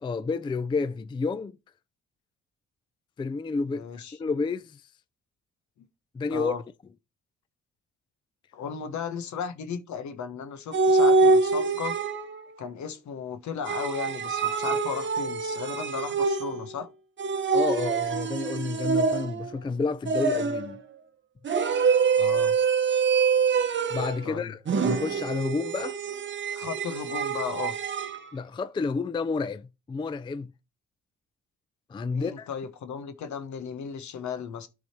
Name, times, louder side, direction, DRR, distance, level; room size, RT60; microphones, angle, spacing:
voice 1, 0.0-1.6 3.2-3.8 4.2-4.8 6.1-6.5 17.5-20.8 23.9-26.0 28.3-30.5 31.9-32.5, left 4 dB, 15° left, 0.3 m, -30 dB
voice 2, 3.7-4.2 5.8-5.9 6.3-6.6 8.5-12.0 12.6-16.9 22.2-22.6 24.2-24.5 26.5-27.8 32.1-34.7, left 6 dB, 70° left, 1.3 m, -35 dB
sound 1, 10.7-12.4 13.6-16.7 17.2-19.5 20.1-20.8 21.4-24.2 24.7-28.2, right 4 dB, 40° right, 0.9 m, -25 dB
12.0 x 4.1 x 4.5 m
cardioid pair, 90°, 30 cm